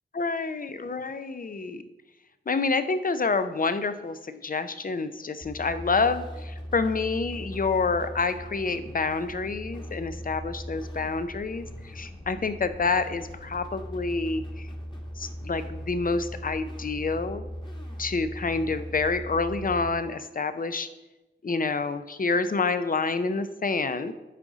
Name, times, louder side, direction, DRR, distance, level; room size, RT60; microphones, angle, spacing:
voice 1, 0.1-1.8 2.5-14.7 15.2-17.4 18.0-20.9 21.4-24.1, left 4 dB, 45° left, 11 dB, 0.5 m, -28 dB
sound 1, 5.4-19.9, equal, 20° left, 1.3 m, -39 dB
7.5 x 4.8 x 3.9 m, 1.0 s
wide cardioid pair, 60°, 21 cm